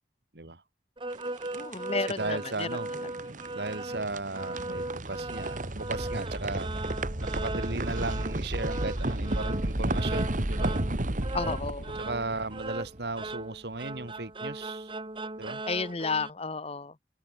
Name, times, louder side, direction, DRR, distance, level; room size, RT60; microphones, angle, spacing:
sound 1, 1.0-16.3, right 2 dB, 30° right, 2.2 m, -38 dB
sound 2, 1.1-13.2, right 1 dB, 50° right, 2.0 m, -33 dB
voice 1, 1.5-3.1 11.3-12.0 15.7-17.0, left 4 dB, 35° left, 1.1 m, -32 dB
voice 2, 2.2-2.9 3.5-6.7 7.2-10.8 12.0-14.9 15.4-15.6, right 2 dB, 65° right, 2.2 m, -36 dB
head